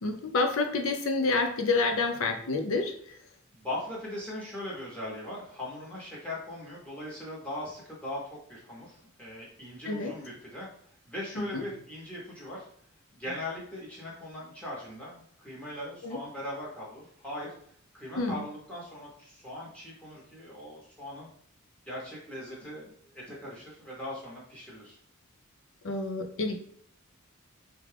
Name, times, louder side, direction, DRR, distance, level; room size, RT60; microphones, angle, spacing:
voice 1, 0.0-3.2 9.8-10.1 11.4-11.6 16.0-16.2 18.2-18.4 25.8-26.6, left 3 dB, 65° left, 6 dB, 0.5 m, -28 dB
voice 2, 3.5-10.7 11.1-12.7 13.1-17.5 17.9-21.3 21.9-25.0, left 1 dB, 5° left, -6 dB, 0.9 m, -40 dB
3.5 x 2.3 x 3.3 m, 0.64 s
head